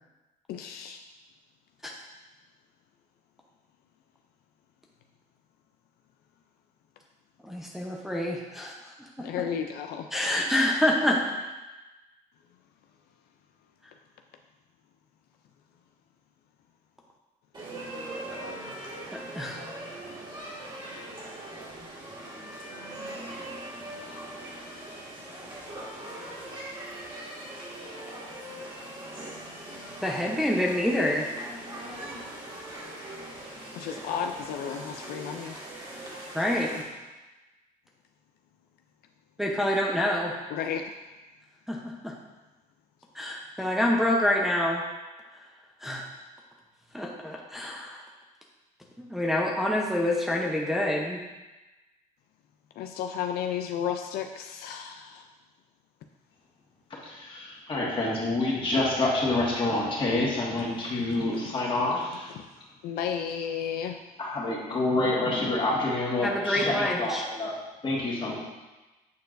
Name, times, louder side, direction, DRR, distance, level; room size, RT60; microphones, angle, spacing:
voice 1, 0.5-1.0 9.2-10.1 33.7-35.6 40.5-40.9 52.8-55.3 61.0-61.5 62.3-62.5 62.8-64.0, left 8 dB, 75° left, 5 dB, 0.4 m, -33 dB
voice 2, 7.5-8.7 10.1-11.2 19.3-19.6 30.0-31.3 36.3-36.8 39.4-40.3 41.7-42.1 43.1-44.8 45.8-46.0 46.9-48.0 49.0-51.2 66.2-67.2, left 1 dB, ahead, -3 dB, 0.7 m, -27 dB
sound 1, 17.5-36.8, right 1 dB, 30° right, 1.9 m, -41 dB
voice 3, 57.0-62.3 64.2-67.5 67.8-68.3, left 2 dB, 30° left, -5 dB, 1.8 m, -27 dB
8.4 x 4.5 x 2.6 m, 1.1 s
cardioid pair, 105°, 16 cm